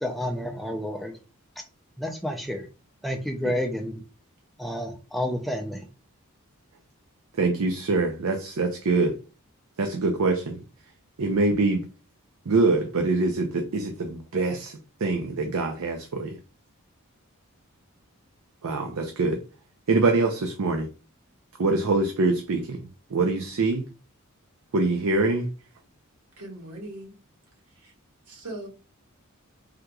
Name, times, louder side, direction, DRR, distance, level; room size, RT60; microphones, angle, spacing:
voice 1, 0.0-1.1 2.0-2.6 3.0-4.0 4.6-5.8, equal, ahead, 0.4 m, -30 dB
voice 2, 7.3-9.2 9.8-10.6 11.2-11.8 12.5-16.4 18.6-19.4 19.9-20.9 21.6-23.8 24.7-25.5, right 3 dB, 70° right, 0.5 m, -24 dB
voice 3, 26.4-27.1 27.7-27.9 28.3-28.7, right 1 dB, 90° right, 1.4 m, -40 dB
3.5 x 2.9 x 2.3 m
head